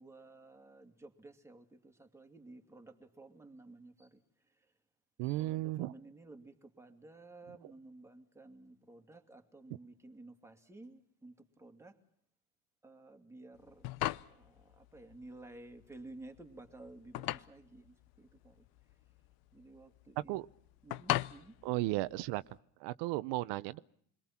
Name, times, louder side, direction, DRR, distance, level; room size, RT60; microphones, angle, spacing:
voice 1, 0.0-4.2 5.2-12.0 12.8-13.9 14.3-18.6 19.5-20.4 20.8-21.9, right 2 dB, 5° right, 5 dB, 2.4 m, -54 dB
voice 2, 5.2-5.9 20.3-20.5 21.6-22.4 22.8-23.8, right 18 dB, 80° right, 14 dB, 0.9 m, -34 dB
sound 1, 13.6-22.6, left 17 dB, 60° left, 0.9 m, -40 dB
29.0 x 22.0 x 5.9 m, 0.64 s
cardioid pair, 145°, 42 cm